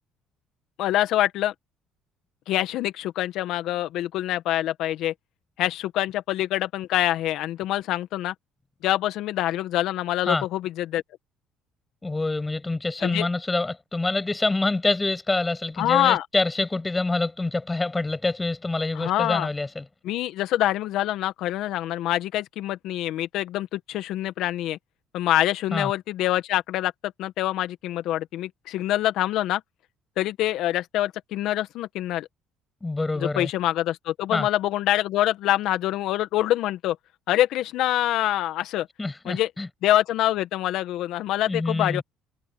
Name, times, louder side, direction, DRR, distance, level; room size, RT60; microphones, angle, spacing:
voice 1, 0.8-1.5 2.5-5.1 5.6-8.3 8.8-11.0 13.0-13.2 15.8-16.2 18.9-19.5 20.0-24.8 25.1-29.6 30.2-32.3 33.2-37.0 37.3-38.9 39.2-39.5 39.8-42.0, left 14 dB, 70° left, 1.6 m, -25 dB
voice 2, 12.0-19.8 25.7-25.9 32.8-33.5 34.3-34.5 39.0-39.7 41.5-42.0, left 2 dB, 20° left, 7.3 m, -26 dB
supercardioid pair, 70°, 0 cm